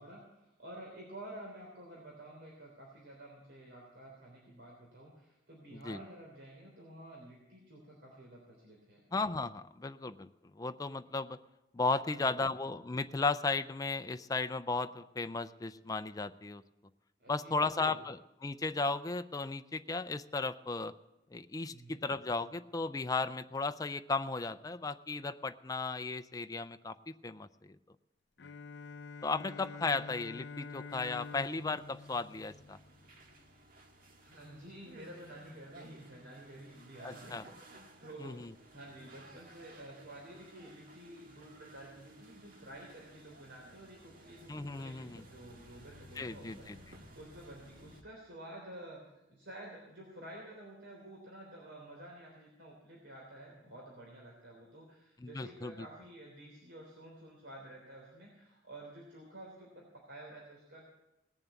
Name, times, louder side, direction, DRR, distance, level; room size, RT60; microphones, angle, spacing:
voice 1, 0.0-9.0 12.0-12.5 17.2-18.0 21.7-22.1 34.2-49.0 49.3-60.8, right 1 dB, 75° right, -2 dB, 3.4 m, -51 dB
voice 2, 9.1-10.3 10.6-11.4 11.7-16.6 17.3-20.9 21.3-26.9 27.2-27.5 29.2-32.8 37.0-37.4 38.2-38.5 44.5-45.2 46.2-46.8 55.2-55.9, left 3 dB, 20° left, 9 dB, 0.4 m, -35 dB
Bowed string instrument, 28.4-33.3, left 4 dB, 75° left, 0.5 m, -47 dB
sound 1, 30.9-48.0, right 1 dB, 55° right, 1.7 m, -57 dB
18.5 x 7.3 x 8.2 m, 0.95 s
head